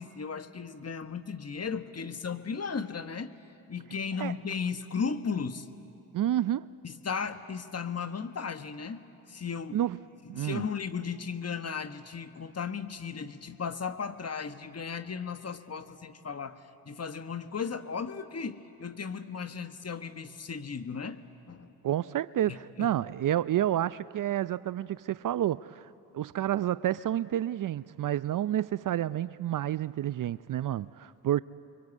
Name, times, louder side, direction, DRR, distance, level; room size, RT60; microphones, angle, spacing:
voice 1, 0.0-3.3 3.7-5.7 6.8-9.8 10.3-21.7 22.5-22.9, left 6 dB, 35° left, 1.5 m, -36 dB
voice 2, 6.1-6.7 9.7-10.0 10.3-10.6 21.8-31.4, right 12 dB, 50° right, 0.5 m, -29 dB
29.5 x 23.5 x 8.4 m
hypercardioid pair, 50°, 42 cm